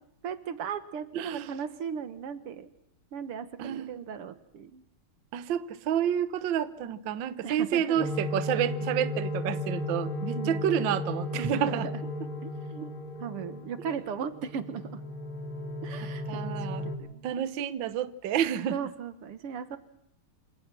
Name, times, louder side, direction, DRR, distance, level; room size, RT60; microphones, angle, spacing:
voice 1, 0.2-2.7 3.1-4.8 7.4-8.0 10.4-10.7 11.4-11.8 12.4-12.9 13.2-15.0 15.8-16.5 16.8-17.2 18.7-19.8, right 7 dB, 90° right, 12 dB, 2.4 m, -37 dB
voice 2, 1.1-1.5 3.6-4.0 5.3-11.9 12.8-12.9 16.0-16.9 17.2-18.8, right 10 dB, 65° right, 14 dB, 1.6 m, -29 dB
sound 1, 8.0-17.0, left 2 dB, 65° left, 3.9 m, -35 dB
27.5 x 18.0 x 6.1 m, 0.80 s
omnidirectional pair, 2.4 m